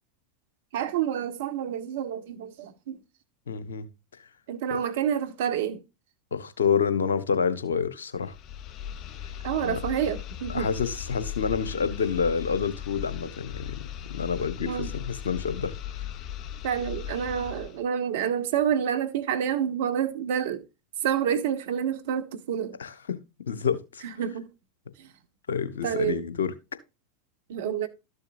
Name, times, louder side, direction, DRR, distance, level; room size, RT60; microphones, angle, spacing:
voice 1, 0.7-3.0 4.5-5.8 9.4-10.7 14.6-14.9 16.6-20.6 21.0-22.8 24.0-24.5 25.0-25.1 25.8-26.2 27.5-27.9, right 9 dB, 65° right, 1.4 m, -28 dB
voice 2, 3.5-3.9 6.3-8.3 9.6-9.8 10.5-15.7 22.8-23.2 23.5-24.0 25.5-26.5, left 6 dB, 80° left, 1.2 m, -28 dB
sound 1, 8.2-17.8, left 10 dB, 45° left, 0.8 m, -38 dB
13.0 x 7.0 x 2.6 m
hypercardioid pair, 90°, 0 cm